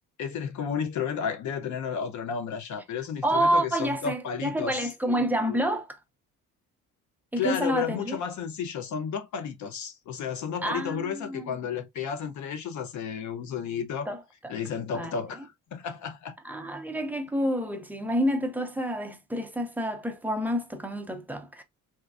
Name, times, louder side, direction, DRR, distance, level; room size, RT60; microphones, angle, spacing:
voice 1, 0.2-4.9 5.5-5.6 7.4-14.1 14.5-16.4, left 7 dB, 65° left, 0.6 m, -32 dB
voice 2, 3.2-6.0 7.3-8.2 10.6-11.5 14.1-14.6 14.9-15.2 16.4-21.6, right 1 dB, 5° right, 0.4 m, -28 dB
3.4 x 3.0 x 2.3 m
cardioid pair, 150°, 32 cm